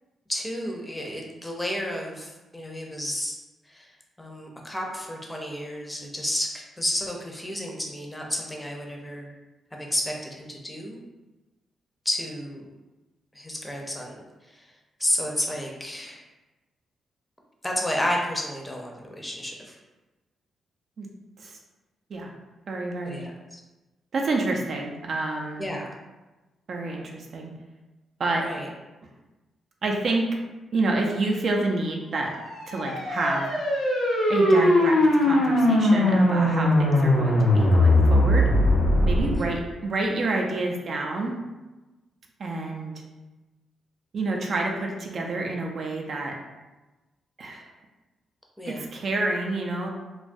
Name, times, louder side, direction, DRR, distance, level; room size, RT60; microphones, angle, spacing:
voice 1, 0.3-3.3 3.7-3.9 4.2-9.3 9.7-11.0 12.0-12.6 13.3-14.7 15.0-16.2 17.6-19.8 23.0-23.6 25.6-25.9 28.3-28.7 39.3-39.5 48.6-48.8, left 1 dB, 10° left, -1 dB, 0.6 m, -31 dB
voice 2, 22.7-23.2 24.1-25.7 26.7-27.5 28.2-28.5 29.8-30.3 30.7-32.3 32.7-33.5 34.3-38.5 39.1-41.4 42.4-42.9 44.1-46.4 47.4-47.7 48.7-49.9, right 2 dB, 60° right, 0 dB, 0.4 m, -28 dB
sound 1, 32.4-39.4, left 1 dB, 80° left, 0.6 m, -20 dB
2.2 x 2.2 x 2.6 m, 1.1 s
supercardioid pair, 55°, 0 cm